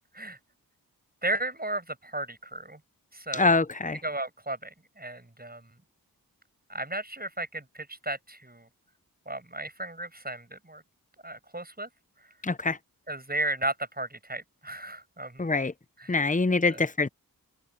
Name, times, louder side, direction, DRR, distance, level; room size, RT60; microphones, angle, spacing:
voice 1, 1.2-2.8 3.1-3.6 4.0-5.7 6.7-8.7 9.3-10.8 11.2-11.9 13.1-15.4 16.0-16.2 16.7-16.8, right 2 dB, 25° right, 7.8 m, -34 dB
voice 2, 3.3-4.0 12.4-12.8 15.4-15.7 16.1-17.1, left 3 dB, 20° left, 0.8 m, -24 dB
wide cardioid pair, 55°, 36 cm